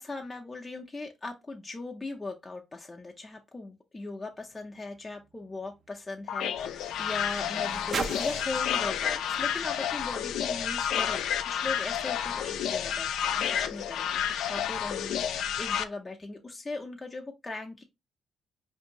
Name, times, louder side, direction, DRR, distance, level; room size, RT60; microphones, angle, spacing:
voice 1, 0.0-17.8, left 3 dB, 20° left, 0.5 m, -39 dB
sound 1, 4.4-10.9 11.7-11.8, right 5 dB, 55° right, 0.4 m, -42 dB
sound 2, 6.3-15.8, left 9 dB, 80° left, 0.3 m, -30 dB
4.4 x 2.6 x 2.8 m
cardioid pair, 90°, 0 cm